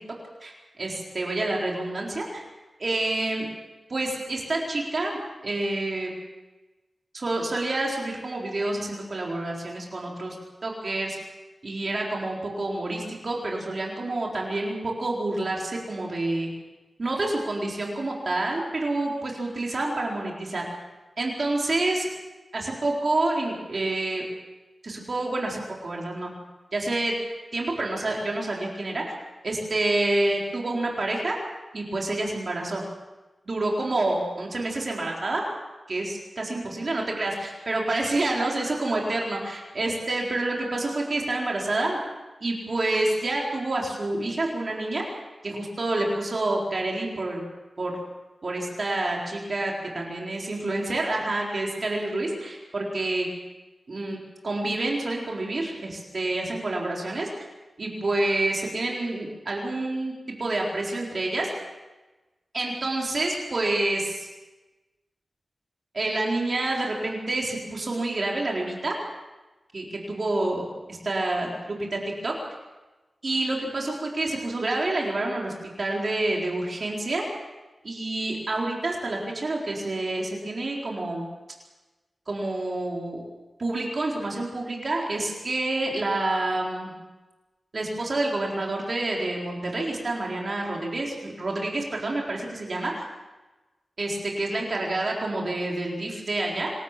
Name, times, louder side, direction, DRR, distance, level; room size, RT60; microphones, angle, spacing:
voice 1, 0.8-2.4 2.8-3.5 3.9-6.2 7.1-10.4 10.6-11.2 11.6-16.5 17.0-20.6 21.2-22.1 22.5-24.2 24.8-26.3 26.7-27.1 27.5-29.1 29.4-31.4 31.7-32.8 33.5-35.5 35.9-42.0 42.4-45.0 45.4-47.4 47.8-47.9 48.4-53.3 53.9-54.2 54.4-57.3 57.8-60.1 60.4-61.5 62.5-64.3 65.9-68.9 69.7-72.3 73.2-77.3 77.8-81.2 82.3-83.2 83.6-86.9 87.7-93.0 94.0-96.7, right 2 dB, 50° right, -2 dB, 4.2 m, -28 dB
26.5 x 13.5 x 7.5 m, 1.1 s
wide cardioid pair, 90°, 0 cm